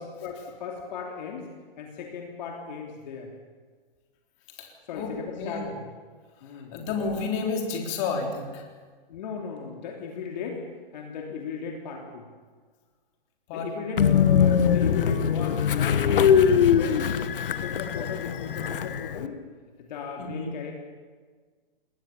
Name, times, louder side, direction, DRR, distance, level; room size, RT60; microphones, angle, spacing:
voice 1, 0.2-1.5 1.8-3.3 4.9-5.9 6.4-6.9 9.1-10.6 10.9-12.3 13.5-16.4 16.7-19.4 19.8-20.7, left 6 dB, 50° left, 0 dB, 3.1 m, -37 dB
voice 2, 4.6-5.7 6.5-8.6 13.5-13.7 20.2-20.5, left 4 dB, 30° left, 1 dB, 3.7 m, -31 dB
Train, 14.0-19.3, left 8 dB, 65° left, 1.3 m, -22 dB
21.0 x 18.5 x 7.1 m, 1.5 s
hypercardioid pair, 150°, 29 cm